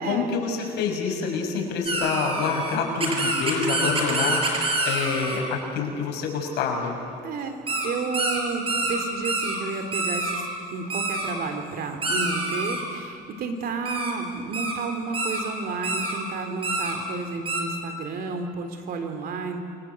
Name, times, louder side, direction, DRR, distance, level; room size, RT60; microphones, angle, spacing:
voice 1, 0.0-4.4 4.8-6.9, left 5 dB, 85° left, 1 dB, 6.0 m, -27 dB
sound 1, 1.9-5.4 7.7-7.9 8.1-8.4 8.7-9.0 9.2-9.6 9.9-10.4 10.9-11.3 12.0-12.8 13.8-14.1 14.5-14.7 15.1-15.4 15.8-16.1 16.6-16.9 17.5-17.6, right 2 dB, 30° right, 5.9 m, -27 dB
voice 2, 7.2-19.6, right 4 dB, 65° right, 6 dB, 3.6 m, -31 dB
29.0 x 23.0 x 8.1 m, 2.5 s
cardioid pair, 110°, 17 cm